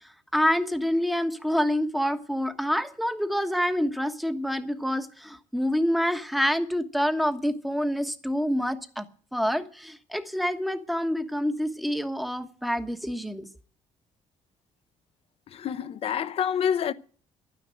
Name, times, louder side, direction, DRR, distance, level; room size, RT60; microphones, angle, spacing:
voice 1, 0.3-9.1 9.3-13.5, equal, ahead, 1.2 m, -27 dB
voice 2, 15.5-16.9, left 8 dB, 50° left, 0.8 m, -27 dB
11.5 x 9.8 x 9.0 m
cardioid pair, 140°, 13 cm